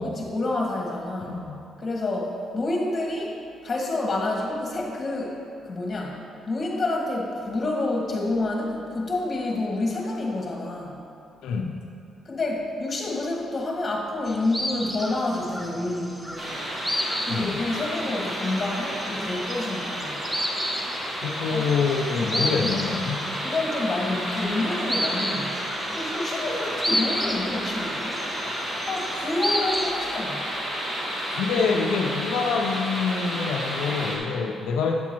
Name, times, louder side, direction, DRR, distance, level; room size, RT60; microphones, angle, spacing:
voice 1, 0.0-1.3 1.8-3.3 3.6-5.4 5.6-6.2 6.5-11.0 12.2-16.6 17.2-20.2 21.5-21.7 22.2-22.7 23.4-25.5 25.9-28.2 28.8-30.5, left 2 dB, 35° left, -1 dB, 1.6 m, -28 dB
voice 2, 1.2-1.6 11.4-11.8 17.3-17.6 21.2-23.2 31.3-34.9, left 5 dB, 85° left, 1 dB, 0.4 m, -26 dB
sound 1, 14.2-29.9, equal, 10° right, 0.7 m, -32 dB
sound 2, 16.4-34.2, equal, 25° right, 1.7 m, -31 dB
9.1 x 7.1 x 2.9 m, 2.7 s
cardioid pair, 90°, 0 cm